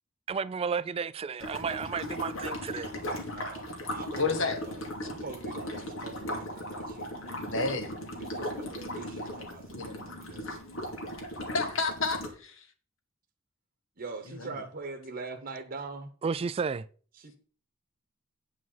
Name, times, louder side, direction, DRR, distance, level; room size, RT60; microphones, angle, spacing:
voice 1, 0.3-2.9 16.2-16.9, right 5 dB, 30° right, 0.3 m, -32 dB
sound 1, 1.4-12.3, equal, 90° left, 2.3 m, -37 dB
voice 2, 3.3-7.1 8.2-10.6 14.0-16.1 17.1-17.4, right 3 dB, 45° right, 1.0 m, -43 dB
voice 3, 4.2-4.6 7.5-7.9 9.7-10.1 11.5-12.6 14.4-14.5, left 4 dB, 65° left, 1.4 m, -30 dB
9.3 x 5.1 x 5.6 m
head